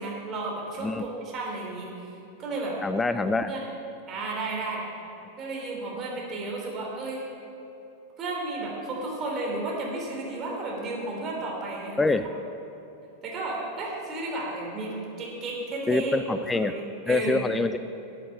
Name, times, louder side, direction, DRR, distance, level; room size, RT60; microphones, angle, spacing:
voice 1, 0.0-2.1 2.4-2.8 3.2-3.6 4.1-4.8 5.4-7.3 8.2-12.0 13.2-16.1 16.6-17.4, right 2 dB, 30° right, -2 dB, 3.3 m, -33 dB
voice 2, 2.8-3.5 12.0-12.3 15.9-16.7 17.1-17.8, left 3 dB, 10° left, 11 dB, 0.4 m, -25 dB
10.0 x 8.6 x 7.5 m, 2.9 s
figure-of-eight pair, 90°, 0 cm